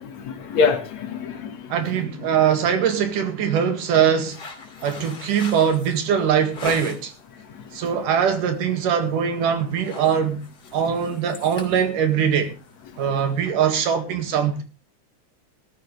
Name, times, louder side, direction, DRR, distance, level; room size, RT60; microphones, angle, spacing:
voice 1, 0.0-2.1 4.7-5.0 7.4-8.0 10.8-10.9 12.9-13.3, left 5 dB, 60° left, 2.8 m, -28 dB
voice 2, 1.7-4.4 4.8-7.1 7.7-10.4 10.7-12.5 13.0-14.6, right 8 dB, 90° right, 3.5 m, -22 dB
sound 1, 4.2-7.2 7.7-8.0 8.4-8.6 8.9-9.3 9.6-13.5, left 3 dB, 30° left, 2.9 m, -39 dB
18.5 x 13.0 x 3.3 m
omnidirectional pair, 3.6 m